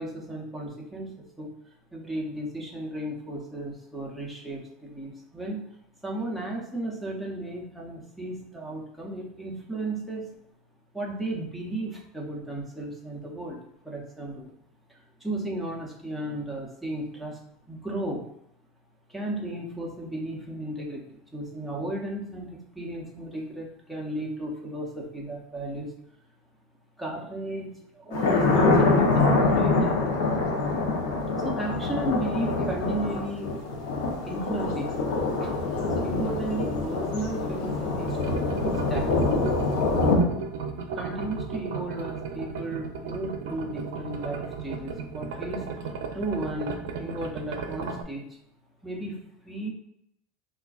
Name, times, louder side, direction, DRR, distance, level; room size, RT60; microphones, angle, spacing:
voice 1, 0.0-1.5 1.9-5.6 6.0-10.3 10.9-14.5 14.9-17.4 17.7-18.3 19.1-25.9 27.0-30.0 31.4-33.6 34.2-38.4 38.9-39.1 40.8-48.3 48.8-49.7, right 1 dB, ahead, -3 dB, 0.6 m, -34 dB
Thunder, 28.1-40.2, left 3 dB, 80° left, 0.7 m, -25 dB
sound 1, 38.0-48.0, right 5 dB, 80° right, 0.4 m, -35 dB
3.5 x 2.4 x 2.4 m, 0.73 s
supercardioid pair, 150°, 0 cm